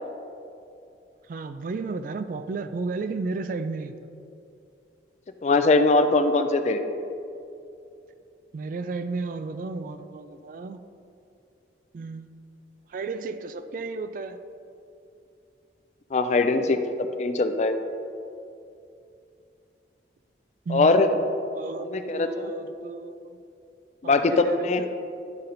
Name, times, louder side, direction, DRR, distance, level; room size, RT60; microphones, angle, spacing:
voice 1, 1.3-3.9 8.5-10.8 11.9-12.3 12.9-14.4 20.7-20.9 21.6-23.2 24.0-24.7, right 3 dB, 50° right, 10 dB, 0.3 m, -33 dB
voice 2, 5.4-6.8 16.1-17.8 20.7-21.1 21.8-22.5 24.0-24.8, left 3 dB, 40° left, 8 dB, 0.4 m, -21 dB
10.5 x 3.9 x 4.2 m, 2.6 s
head